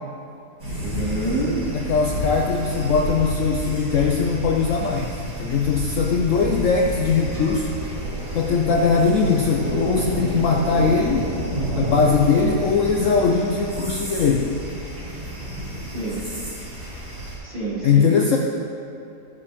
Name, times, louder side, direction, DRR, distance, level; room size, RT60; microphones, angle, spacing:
sound 1, 0.6-17.4, right 1 dB, 80° right, 3.5 m, -30 dB
voice 1, 0.8-1.6 15.8-16.2 17.4-18.1, right 2 dB, 30° right, -8 dB, 2.5 m, -27 dB
voice 2, 1.7-7.7 8.3-11.3 11.8-14.5 17.8-18.4, left 5 dB, 65° left, 1 dB, 0.9 m, -20 dB
14.5 x 7.1 x 3.6 m, 2.7 s
omnidirectional pair, 1.7 m